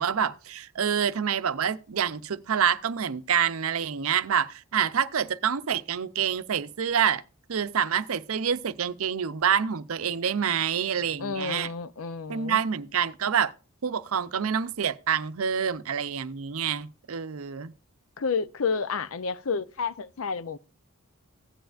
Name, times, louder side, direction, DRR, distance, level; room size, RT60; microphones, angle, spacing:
voice 1, 0.0-7.2 7.5-11.7 12.3-13.5 13.8-17.7, right 7 dB, 80° right, 0.6 m, -27 dB
voice 2, 11.2-12.6 18.2-20.6, left 5 dB, 75° left, 0.6 m, -30 dB
16.0 x 10.5 x 2.5 m
head